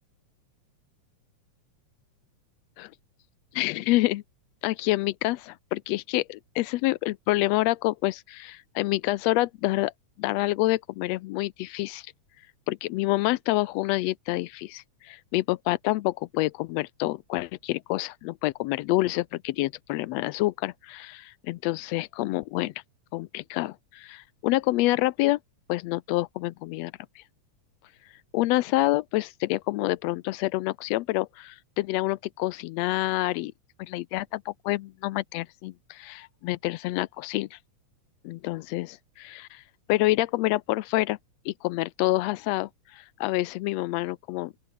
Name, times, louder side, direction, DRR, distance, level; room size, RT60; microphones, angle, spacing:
voice 1, 3.5-4.2 4.6-9.9 10.2-12.1 12.7-22.7 23.1-25.4 25.7-27.2 28.3-33.5 33.8-37.6 38.2-39.6 39.9-41.2 41.4-44.5, left 18 dB, 80° left, 1.6 m, -27 dB
open air
omnidirectional pair, 3.5 m